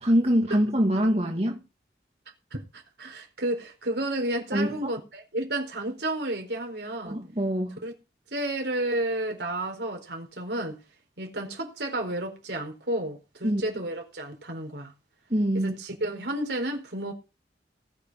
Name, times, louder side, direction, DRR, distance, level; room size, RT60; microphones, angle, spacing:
voice 1, 0.0-1.6 4.5-4.9 7.0-7.8 13.4-13.6 15.3-15.7, equal, 35° right, 2.3 m, -24 dB
voice 2, 2.5-7.2 7.8-7.9 8.3-10.8 11.2-14.9 15.5-17.1, right 1 dB, 75° right, 4.4 m, -31 dB
19.5 x 7.0 x 4.9 m
head